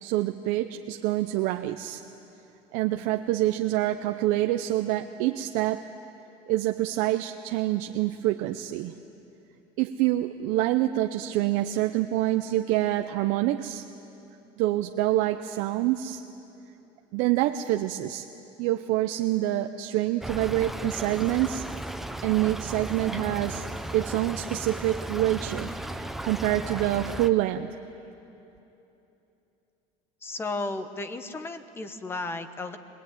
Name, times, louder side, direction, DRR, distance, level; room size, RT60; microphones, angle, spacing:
voice 1, 0.0-2.0 2.7-5.8 6.5-8.9 9.8-13.8 14.6-16.2 17.1-18.2 18.6-21.7 22.2-23.7 23.9-27.8, right 14 dB, 75° right, 6 dB, 0.7 m, -26 dB
Stream / Trickle dribble, 20.2-27.3, right 1 dB, ahead, 0.7 m, -35 dB
voice 2, 30.2-32.8, left 2 dB, 15° left, 10 dB, 1.1 m, -34 dB
23.5 x 20.5 x 9.3 m, 3.0 s
cardioid pair, 155°, 14 cm